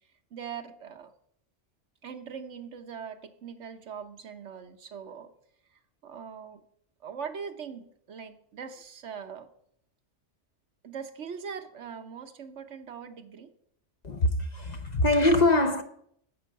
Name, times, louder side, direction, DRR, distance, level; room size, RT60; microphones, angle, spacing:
voice 1, 0.3-1.1 2.0-5.3 5.7-6.6 7.0-9.5 10.8-13.5, right 6 dB, 75° right, 1.3 m, -41 dB
voice 2, 14.0-15.8, left 2 dB, 40° left, 0.8 m, -23 dB
10.0 x 8.0 x 6.6 m
omnidirectional pair, 1.2 m